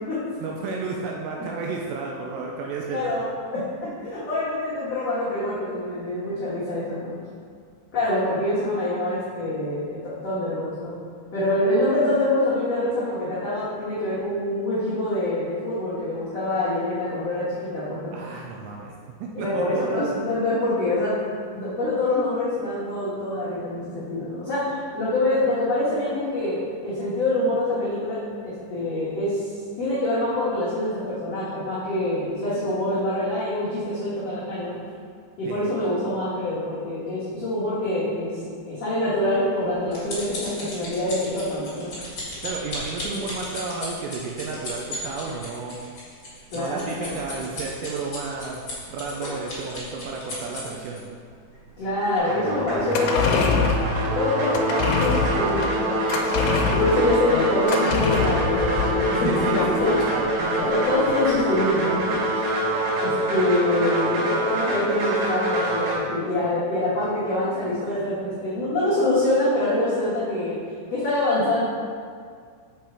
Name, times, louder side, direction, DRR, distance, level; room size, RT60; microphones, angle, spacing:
voice 1, 0.4-3.1 18.1-20.0 35.4-35.7 42.4-45.8 46.5-48.6 48.9-51.0 59.1-60.5 60.8-61.0, right 4 dB, 85° right, -1 dB, 2.5 m, -32 dB
voice 2, 2.9-3.2 3.5-7.1 7.9-10.9 11.3-18.1 19.3-21.2 21.5-29.5 29.8-34.7 35.4-41.9 46.5-47.2 51.8-53.6 54.1-56.4 56.7-59.3 59.8-59.9 60.6-62.5 63.0-70.6 70.9-71.6, left 1 dB, 65° left, -11 dB, 1.6 m, -25 dB
sound 1, 39.3-51.0 51.6-51.8 52.2-52.3, left 1 dB, 40° left, 1.8 m, -35 dB
sound 2, 52.3-66.0, right 1 dB, 60° right, 3.7 m, -25 dB
sound 3, 52.7-61.4 61.7-61.8, left 5 dB, 80° left, 2.7 m, -25 dB
6.8 x 5.5 x 4.5 m, 2.1 s
omnidirectional pair, 5.3 m